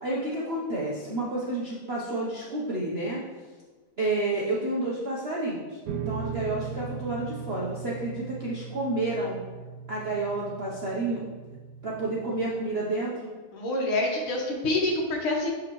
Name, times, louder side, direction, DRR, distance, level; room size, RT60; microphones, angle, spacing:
voice 1, 0.0-3.2 4.0-9.4 9.9-11.2 11.8-13.3, right 2 dB, 60° right, -6 dB, 0.6 m, -30 dB
sound 1, 5.9-12.4, right 6 dB, 75° right, 0.9 m, -38 dB
voice 2, 13.5-15.5, left 2 dB, 80° left, 0 dB, 2.0 m, -27 dB
7.3 x 5.0 x 3.1 m, 1.4 s
omnidirectional pair, 2.3 m